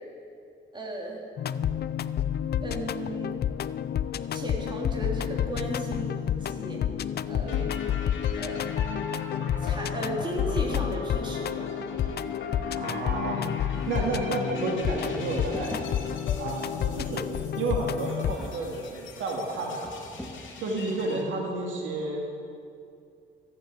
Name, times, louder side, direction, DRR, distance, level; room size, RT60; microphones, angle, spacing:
voice 1, 0.7-1.3 2.6-3.3 4.3-6.8 7.3-7.6 8.4-8.7 9.6-11.7, right 1 dB, 25° right, -2 dB, 3.4 m, -35 dB
sound 1, 1.4-18.4, left 9 dB, 55° left, 0.5 m, -30 dB
sound 2, 7.5-21.2, left 3 dB, 70° left, 2.3 m, -41 dB
voice 2, 12.7-13.4 13.9-15.7 16.4-17.3 17.6-20.0 20.6-22.3, right 3 dB, 75° right, -1 dB, 2.6 m, -31 dB
sound 3, 13.7-14.4 15.1-16.4 18.2-19.0 19.7-20.6, left 1 dB, ahead, 2.0 m, -43 dB
14.5 x 8.7 x 8.5 m, 2.5 s
cardioid pair, 90°, 20 cm